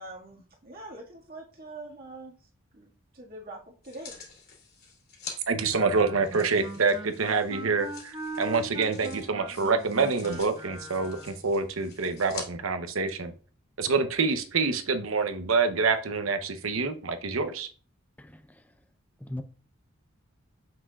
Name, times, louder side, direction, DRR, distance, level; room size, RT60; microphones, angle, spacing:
voice 1, 0.0-4.2, right 2 dB, 45° right, 1.9 m, -44 dB
sound 1, 3.8-5.4 6.2-12.5 13.1-13.2, left 5 dB, 50° left, 2.6 m, -46 dB
voice 2, 5.5-13.3 13.8-17.7, right 4 dB, 85° right, 0.9 m, -27 dB
Wind instrument woodwind instrument, 5.7-11.4, right 2 dB, 25° right, 1.2 m, -40 dB
voice 3, 18.2-18.7 19.2-19.4, left 1 dB, 10° left, 0.5 m, -40 dB
7.5 x 6.1 x 2.4 m
head